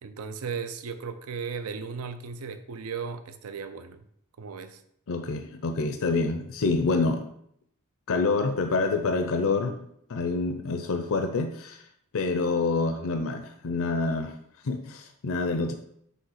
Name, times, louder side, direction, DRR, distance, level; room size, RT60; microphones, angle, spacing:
voice 1, 0.0-4.1 4.4-4.8, right 5 dB, 75° right, 10 dB, 0.5 m, -36 dB
voice 2, 5.1-7.2 8.1-9.7 10.1-11.8 12.1-14.3 14.6-15.7, left 3 dB, 65° left, 7 dB, 0.5 m, -27 dB
5.6 x 3.2 x 5.6 m, 0.70 s
head